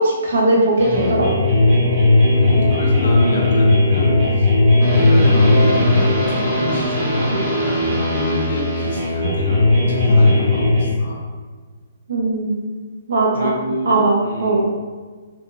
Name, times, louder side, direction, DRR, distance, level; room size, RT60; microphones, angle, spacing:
voice 1, 0.0-1.5 12.1-12.6 13.1-13.5 13.8-14.7, right 2 dB, 70° right, -3 dB, 0.9 m, -18 dB
sound 1, 0.8-10.9, left 2 dB, 50° right, 1.2 m, -16 dB
voice 2, 2.2-4.5 4.9-7.8 8.1-11.2 13.3-14.7, left 1 dB, 65° left, -3 dB, 1.0 m, -28 dB
3.6 x 2.3 x 2.6 m, 1.4 s
hypercardioid pair, 150°, 0 cm